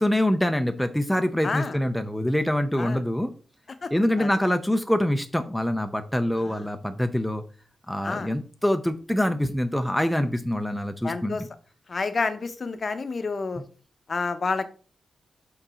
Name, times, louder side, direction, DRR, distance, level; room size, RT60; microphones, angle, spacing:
voice 1, 0.0-3.3 3.9-7.4 7.9-11.4, left 1 dB, 5° left, 6 dB, 0.5 m, -25 dB
voice 2, 1.4-1.8 2.8-3.0 3.8-3.9 4.2-4.3 6.4-6.7 8.0-8.3 11.0-11.4 11.9-13.6 14.1-14.7, left 4 dB, 40° left, 10 dB, 0.7 m, -29 dB
6.1 x 3.9 x 5.5 m, 0.38 s
wide cardioid pair, 150°, 0 cm